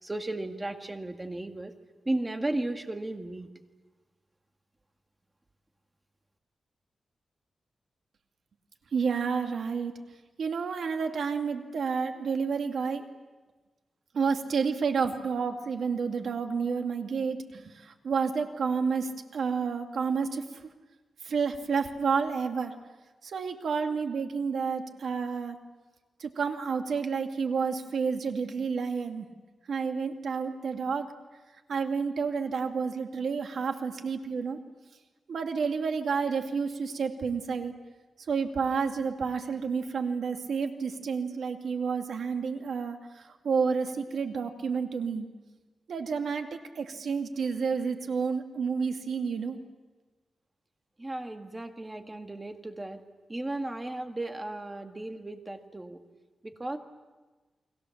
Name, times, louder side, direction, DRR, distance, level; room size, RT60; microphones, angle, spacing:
voice 1, 0.0-1.7 2.1-3.5 51.0-53.0 53.3-56.0 56.4-56.8, right 2 dB, 20° right, 6 dB, 1.9 m, -35 dB
voice 2, 8.9-9.9 10.4-13.1 14.1-20.6 21.2-22.8 23.2-25.6 26.2-29.3 29.7-31.1 31.7-34.6 35.3-37.8 38.3-45.3 45.9-49.6, right 5 dB, 75° right, 5 dB, 2.2 m, -30 dB
30.0 x 22.5 x 7.2 m, 1.3 s
wide cardioid pair, 115°, 0 cm